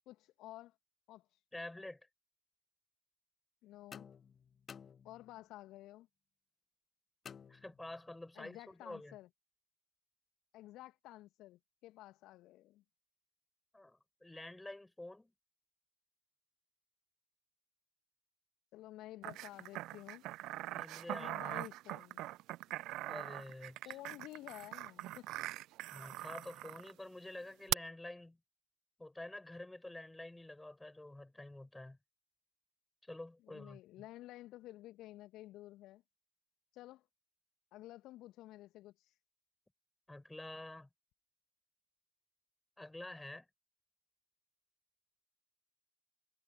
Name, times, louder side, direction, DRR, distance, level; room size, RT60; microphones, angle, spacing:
voice 1, 0.1-0.8 1.1-1.3 3.6-4.1 5.0-6.1 8.3-9.3 10.5-12.8 18.7-20.3 21.2-22.2 23.8-25.3 33.5-36.0 36.7-37.1 37.7-39.1, left 16 dB, 60° left, 1.5 m, -52 dB
voice 2, 1.5-2.1 7.5-9.2 13.7-15.3 20.7-21.6 23.0-23.9 25.9-28.4 29.0-32.0 33.0-34.0 40.1-40.9 42.8-43.5, left 1 dB, 10° left, 6.4 m, -49 dB
sound 1, 3.9-5.6 7.2-8.2, left 7 dB, 40° left, 1.3 m, -55 dB
sound 2, 19.2-26.9 27.7-27.8, right 17 dB, 60° right, 0.8 m, -42 dB
figure-of-eight pair, 50°, 0 cm